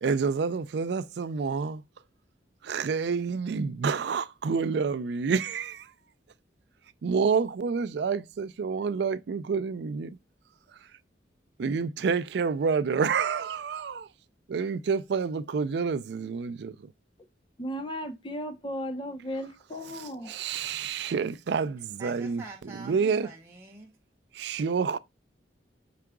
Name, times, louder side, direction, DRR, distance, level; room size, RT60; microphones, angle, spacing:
voice 1, 0.0-1.8 2.6-5.9 7.0-10.2 11.6-14.1 14.5-16.9 19.9-22.4 22.9-23.3 24.3-25.0, right 5 dB, 65° right, 0.4 m, -28 dB
voice 2, 17.6-20.4, equal, 25° left, 0.7 m, -35 dB
voice 3, 22.0-24.0, right 3 dB, 15° right, 0.7 m, -45 dB
4.9 x 4.6 x 2.2 m
head